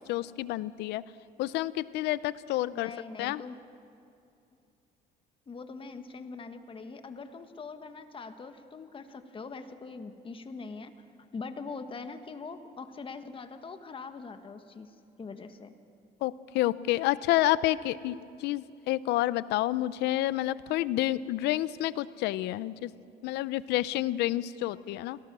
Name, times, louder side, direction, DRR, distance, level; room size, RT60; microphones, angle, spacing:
voice 1, 0.1-1.0 1.4-2.9 3.2-3.4 16.2-22.9 23.2-25.2, left 15 dB, 85° left, 17 dB, 0.6 m, -29 dB
voice 2, 2.7-3.6 5.5-11.1 11.3-15.7, left 4 dB, 30° left, 8 dB, 1.5 m, -42 dB
27.0 x 18.0 x 6.1 m, 2.6 s
cardioid pair, 110°, 17 cm